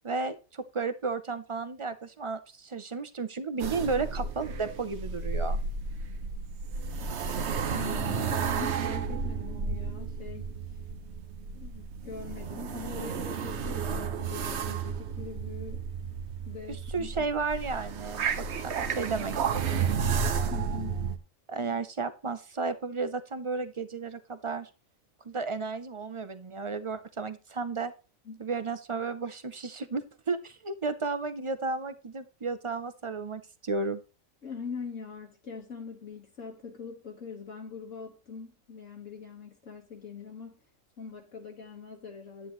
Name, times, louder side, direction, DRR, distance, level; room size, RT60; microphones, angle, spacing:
voice 1, 0.0-5.6 16.7-19.9 21.5-24.7 25.2-27.9 28.4-34.0, right 4 dB, 40° right, 0.4 m, -33 dB
sound 1, 3.6-21.2, right 6 dB, 55° right, 1.1 m, -32 dB
voice 2, 7.7-10.5 11.5-15.8 16.5-17.1 20.5-21.0 28.3-28.5 34.4-40.6 41.0-42.5, left 5 dB, 65° left, 1.8 m, -42 dB
9.9 x 9.7 x 3.1 m
omnidirectional pair, 1.4 m